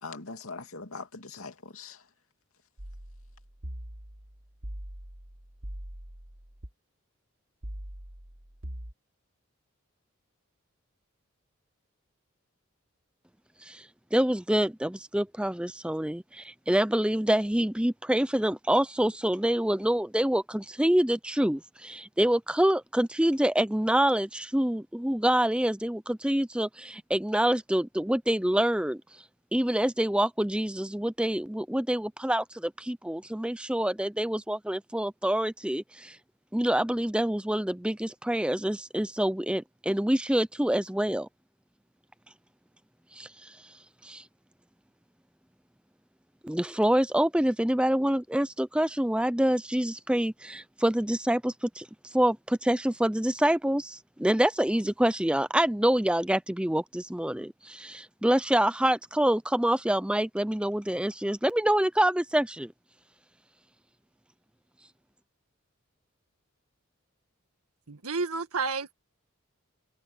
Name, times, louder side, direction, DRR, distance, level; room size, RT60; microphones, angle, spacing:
voice 1, 0.0-2.0, left 3 dB, 80° left, 2.6 m, -41 dB
sound 1, 2.8-6.7 7.6-8.9, equal, 65° right, 3.1 m, -42 dB
voice 2, 13.6-29.2 29.5-36.2 36.5-41.3 43.1-43.7 44.0-44.2 46.4-62.7, right 1 dB, 5° right, 0.5 m, -26 dB
voice 3, 67.9-68.9, right 4 dB, 90° right, 1.9 m, -30 dB
head